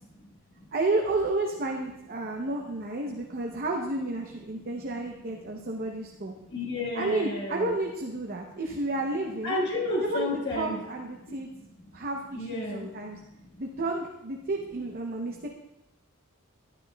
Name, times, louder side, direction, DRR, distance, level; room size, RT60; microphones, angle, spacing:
voice 1, 0.7-6.3 6.9-9.6 10.0-11.5 11.9-13.2 13.6-15.5, right 2 dB, 45° right, 1 dB, 0.7 m, -31 dB
voice 2, 6.5-7.7 9.4-10.8 12.4-12.9, left 2 dB, 55° left, -4 dB, 1.5 m, -31 dB
11.0 x 10.5 x 2.2 m, 0.94 s
head